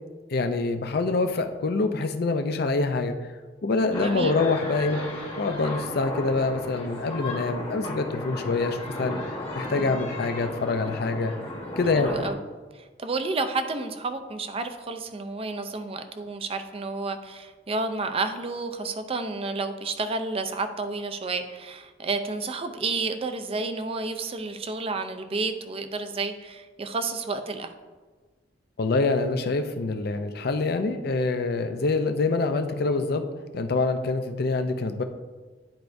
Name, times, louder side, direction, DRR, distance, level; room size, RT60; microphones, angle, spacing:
voice 1, 0.3-3.1 3.6-5.0 5.4-9.2 9.5-11.3 11.8-12.1 28.8-33.2 33.5-35.0, left 3 dB, 60° left, 8 dB, 0.5 m, -25 dB
sound 1, 3.9-12.3, left 2 dB, 30° left, 1.2 m, -35 dB
voice 2, 4.0-4.3 11.9-12.4 12.7-27.7, right 3 dB, 35° right, 8 dB, 0.5 m, -31 dB
10.5 x 4.6 x 2.6 m, 1.3 s
head